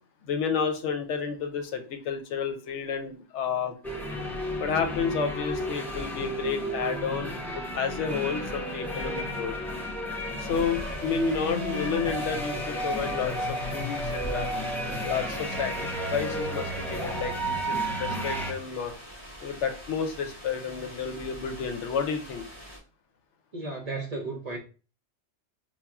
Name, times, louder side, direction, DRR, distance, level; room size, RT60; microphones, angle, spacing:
voice 1, 0.2-3.7 4.6-9.6 10.4-14.5 15.0-18.9 19.4-22.5, left 6 dB, 85° left, 0.9 m, -31 dB
sound 1, 3.8-18.5, equal, ahead, 0.5 m, -32 dB
sound 2, 10.5-22.8, equal, 25° left, 1.4 m, -44 dB
voice 2, 23.5-24.6, right 3 dB, 45° right, 0.5 m, -34 dB
5.6 x 2.2 x 2.3 m
omnidirectional pair, 1.2 m